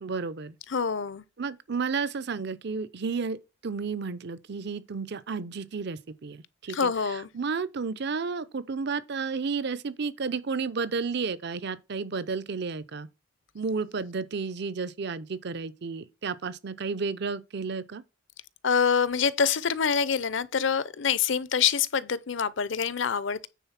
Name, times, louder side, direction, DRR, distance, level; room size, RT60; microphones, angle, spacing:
voice 1, 0.0-0.6 1.4-13.1 13.5-18.0, right 5 dB, 60° right, 0.6 m, -32 dB
voice 2, 0.7-1.2 6.7-7.3 18.6-23.5, left 6 dB, 65° left, 0.6 m, -26 dB
9.3 x 4.0 x 5.8 m
head